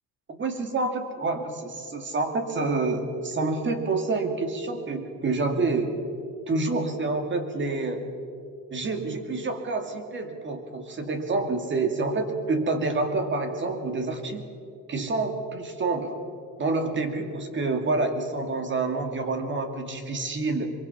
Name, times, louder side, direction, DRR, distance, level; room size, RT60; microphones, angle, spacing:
voice 1, 0.3-5.9 6.5-8.1 8.7-14.4 14.9-16.1 16.6-20.7, right 3 dB, 30° right, 6 dB, 2.1 m, -28 dB
24.0 x 23.0 x 5.7 m, 2.4 s
cardioid pair, 145°, 38 cm